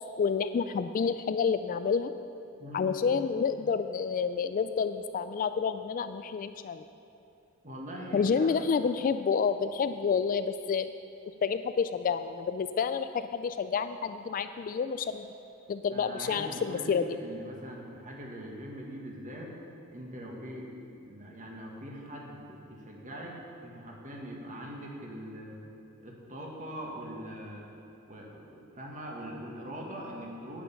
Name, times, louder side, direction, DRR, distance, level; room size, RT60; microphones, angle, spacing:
voice 1, 0.2-2.1 2.7-6.9 8.1-10.9 11.4-15.3 15.7-17.0, left 6 dB, 40° left, 11 dB, 0.3 m, -29 dB
voice 2, 2.6-2.9 7.6-8.5 15.9-19.5 19.9-20.7 20.9-25.6 26.0-27.6 28.1-30.6, equal, 35° right, -1 dB, 1.8 m, -42 dB
10.0 x 9.3 x 5.7 m, 2.9 s
head